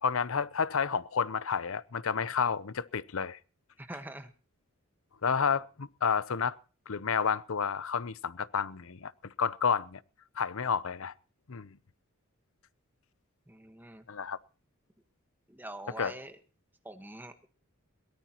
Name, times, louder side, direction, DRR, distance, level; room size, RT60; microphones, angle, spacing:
voice 1, 0.0-3.4 5.2-6.6 6.9-10.0 10.4-11.1 11.5-11.8 14.1-14.4 16.0-16.1, left 6 dB, 70° left, 0.7 m, -30 dB
voice 2, 3.8-4.3 13.5-14.0 15.5-16.4 16.8-17.5, right 1 dB, 10° right, 1.4 m, -44 dB
22.5 x 18.0 x 3.0 m
head